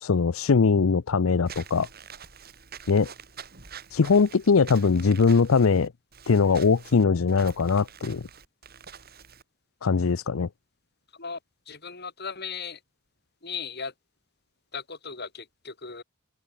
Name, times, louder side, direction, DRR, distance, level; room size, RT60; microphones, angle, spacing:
voice 1, 0.0-1.9 2.9-3.1 3.9-5.9 6.3-8.2 9.8-10.5, left 5 dB, 85° left, 0.6 m, -21 dB
Walk footsteps / Squeak, 1.5-9.4, right 7 dB, 50° right, 3.4 m, -46 dB
voice 2, 11.7-12.8 13.4-13.9 14.7-16.0, left 5 dB, 50° left, 5.5 m, -37 dB
open air
head